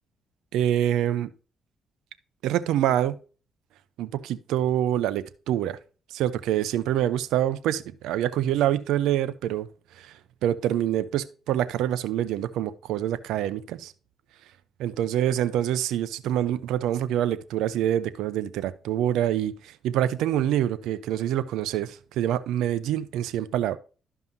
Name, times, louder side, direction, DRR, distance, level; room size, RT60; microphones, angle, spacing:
voice 1, 0.5-1.3 2.4-3.2 4.0-5.8 6.1-9.7 10.0-10.1 10.4-13.9 14.8-23.8, right 11 dB, 90° right, 0.6 m, -26 dB
12.0 x 5.5 x 2.7 m
cardioid pair, 90°, 0 cm